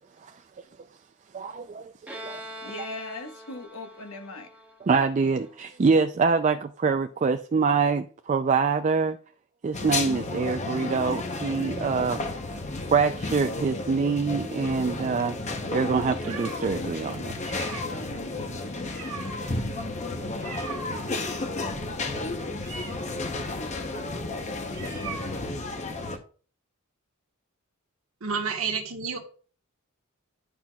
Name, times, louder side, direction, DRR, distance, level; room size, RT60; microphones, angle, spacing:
voice 1, 1.3-2.4 4.8-9.2 9.6-12.2 12.9-17.3 20.3-20.4 22.4-22.9, right 4 dB, 35° right, 0.3 m, -25 dB
Bowed string instrument, 2.1-5.6, equal, 5° right, 1.2 m, -43 dB
voice 2, 2.6-4.5 17.9-19.1 24.5-25.2, left 3 dB, 75° left, 1.2 m, -41 dB
sound 1, 9.7-26.2, left 2 dB, 30° left, 0.8 m, -32 dB
sound 2, 14.7-16.8 17.3-25.7, right 3 dB, 85° right, 2.0 m, -41 dB
voice 3, 28.2-29.2, right 5 dB, 70° right, 1.4 m, -29 dB
10.5 x 5.7 x 2.3 m
head